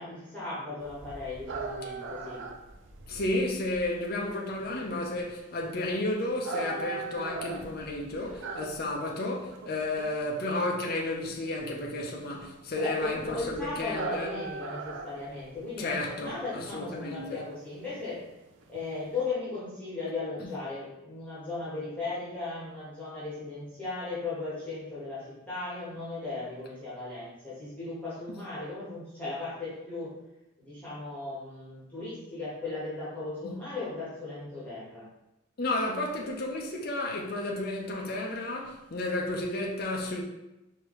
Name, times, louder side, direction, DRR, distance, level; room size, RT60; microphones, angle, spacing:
voice 1, 0.0-2.4 12.7-18.2 18.7-30.1 30.6-35.1, left 3 dB, 5° left, 1.4 m, -37 dB
sound 1, 0.8-19.2, right 3 dB, 65° right, 0.4 m, -41 dB
voice 2, 3.1-14.3 15.8-17.4 33.4-33.5 35.6-40.2, left 2 dB, 45° left, 0.6 m, -32 dB
4.7 x 2.8 x 3.1 m
head